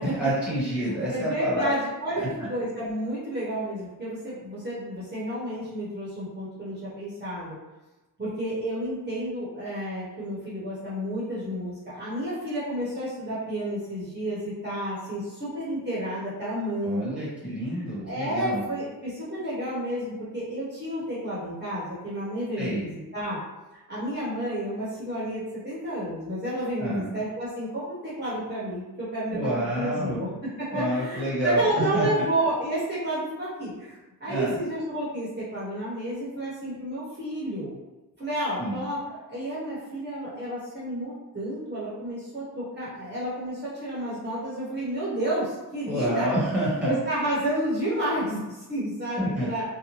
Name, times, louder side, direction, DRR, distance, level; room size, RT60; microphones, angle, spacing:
voice 1, 0.0-1.7 2.1-2.3 16.8-18.6 22.6-22.8 26.8-27.1 29.3-30.2 30.7-32.3 34.3-34.6 38.6-38.8 45.9-46.9 49.2-49.5, right 1 dB, 5° right, -8 dB, 1.1 m, -28 dB
voice 2, 0.8-7.6 8.2-17.2 18.0-23.4 23.9-30.3 30.6-37.7 38.2-46.3 46.9-49.6, right 1 dB, 25° right, -9 dB, 0.9 m, -31 dB
2.6 x 2.1 x 3.0 m, 1.1 s
cardioid pair, 110°, 41 cm